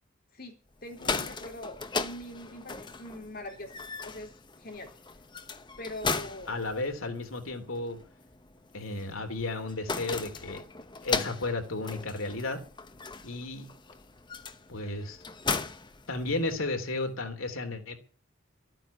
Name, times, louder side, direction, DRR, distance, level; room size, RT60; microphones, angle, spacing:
voice 1, 0.3-4.9 5.8-6.6, left 1 dB, 45° left, 4.4 m, -43 dB
sound 1, 0.8-16.7, left 4 dB, 20° left, 1.0 m, -37 dB
voice 2, 6.5-8.0 8.7-10.6 11.0-12.6 13.2-13.7 14.7-15.2 16.1-17.9, left 2 dB, 85° left, 3.3 m, -33 dB
13.5 x 9.0 x 9.9 m
head